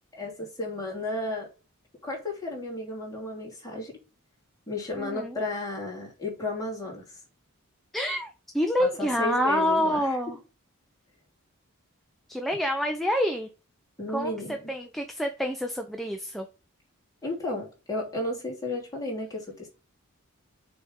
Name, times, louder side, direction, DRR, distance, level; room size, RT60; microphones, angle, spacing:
voice 1, 0.2-1.5 2.0-4.0 4.7-7.2 8.8-10.2 14.0-14.7 17.2-19.7, left 2 dB, 15° left, 3.0 m, -33 dB
voice 2, 5.0-5.4 7.9-10.4 12.3-13.5 14.1-14.3 14.7-16.5, equal, ahead, 0.6 m, -27 dB
6.8 x 3.6 x 5.3 m
head